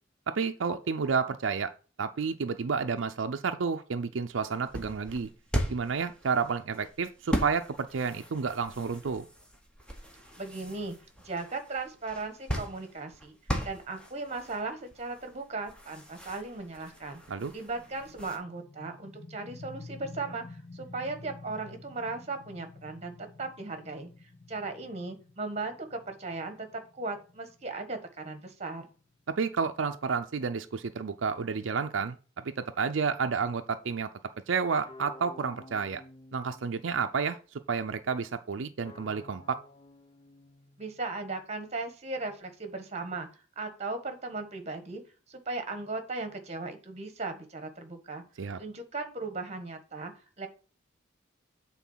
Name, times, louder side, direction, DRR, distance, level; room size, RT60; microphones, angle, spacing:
voice 1, 0.3-1.7 2.0-5.3 5.7-9.2 17.3-17.5 29.3-32.2 32.4-34.1 34.5-36.0 36.3-37.4 37.7-39.6 48.4-48.6, right 5 dB, 80° right, 7 dB, 0.5 m, -30 dB
sound 1, 4.3-18.4, equal, 5° left, 1.2 m, -39 dB
voice 2, 10.4-10.9 11.2-13.4 13.6-17.2 17.5-24.1 24.5-28.9 40.8-43.3 43.6-45.0 45.3-48.2 48.6-50.5, right 3 dB, 35° right, 7 dB, 1.3 m, -37 dB
sound 2, 17.7-29.2, left 3 dB, 70° left, 1.2 m, -50 dB
sound 3, 34.8-37.2 38.9-41.2, left 1 dB, 25° left, 0.9 m, -51 dB
8.3 x 3.9 x 5.6 m, 0.37 s
head